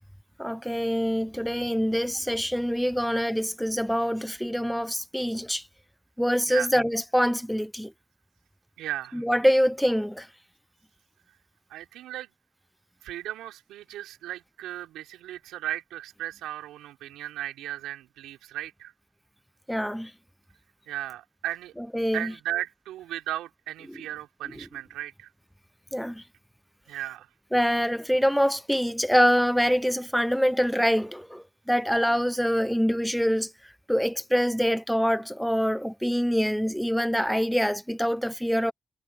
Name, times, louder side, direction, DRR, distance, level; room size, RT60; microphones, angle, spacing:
voice 1, 0.4-5.6 6.2-7.9 9.2-10.3 19.7-20.1 21.9-22.3 25.9-26.2 27.5-33.5 33.9-38.7, equal, ahead, 1.0 m, -25 dB
voice 2, 8.8-9.2 11.7-12.3 13.0-18.9 20.9-21.7 22.1-25.3 26.9-27.3, right 13 dB, 80° right, 5.5 m, -36 dB
hypercardioid pair, 40°, 0 cm